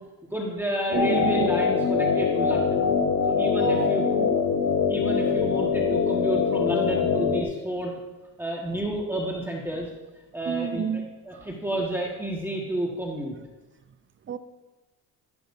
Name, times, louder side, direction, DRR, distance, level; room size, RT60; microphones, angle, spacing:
voice 1, 0.3-2.9 3.3-4.0 4.9-7.9 8.4-9.9 10.3-13.3, right 1 dB, 5° right, -3 dB, 1.8 m, -31 dB
sound 1, 0.9-7.4, left 5 dB, 55° left, 1.3 m, -23 dB
voice 2, 0.9-1.5 3.6-4.4 10.5-11.5 14.3-14.4, right 7 dB, 30° right, 12 dB, 0.7 m, -31 dB
12.5 x 10.5 x 2.7 m, 1.2 s
supercardioid pair, 75°, 38 cm